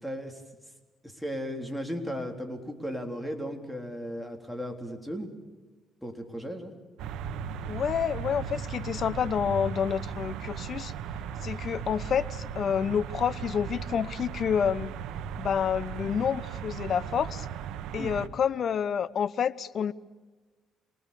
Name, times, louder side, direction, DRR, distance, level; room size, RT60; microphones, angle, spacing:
voice 1, 0.0-0.4 1.0-5.3 6.0-6.7 18.0-18.1, equal, ahead, 4 dB, 3.6 m, -36 dB
sound 1, 7.0-18.3, right 7 dB, 85° right, 1.1 m, -37 dB
voice 2, 7.7-10.9 11.4-14.9 15.4-17.5 17.9-19.9, left 7 dB, 55° left, 18 dB, 0.9 m, -28 dB
27.0 x 19.5 x 6.9 m, 1.3 s
cardioid pair, 95°, 0 cm